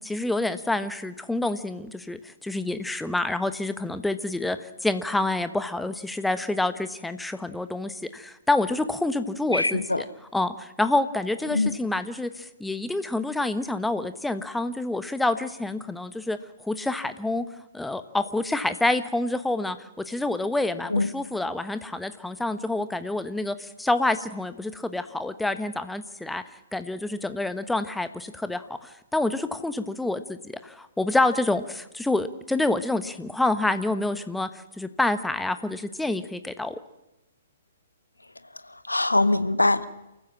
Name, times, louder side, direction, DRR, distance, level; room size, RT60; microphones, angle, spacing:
voice 1, 0.0-10.0 10.3-17.5 17.7-26.4 26.7-34.5 34.8-36.8, left 2 dB, 5° left, 11 dB, 1.1 m, -27 dB
voice 2, 9.5-10.0 11.5-11.7 20.9-21.1 38.9-39.9, left 2 dB, 85° left, 12 dB, 1.3 m, -22 dB
28.5 x 14.5 x 7.6 m, 0.95 s
figure-of-eight pair, 120°, 0 cm